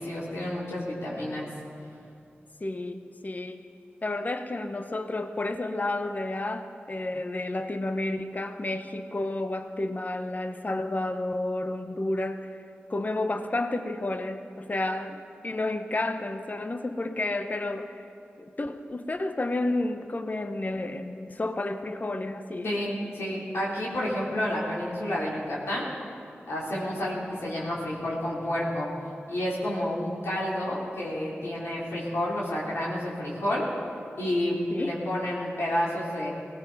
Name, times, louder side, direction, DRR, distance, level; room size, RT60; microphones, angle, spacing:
voice 1, 0.0-1.5 22.6-25.9 26.5-28.9 29.3-33.7 34.2-36.3, left 1 dB, 90° left, -7 dB, 3.5 m, -30 dB
voice 2, 2.6-3.7 4.0-12.6 12.9-18.0 18.4-22.7 34.7-35.0, left 2 dB, 40° left, 8 dB, 0.9 m, -31 dB
18.5 x 16.5 x 4.1 m, 2.5 s
cardioid pair, 45°, 4 cm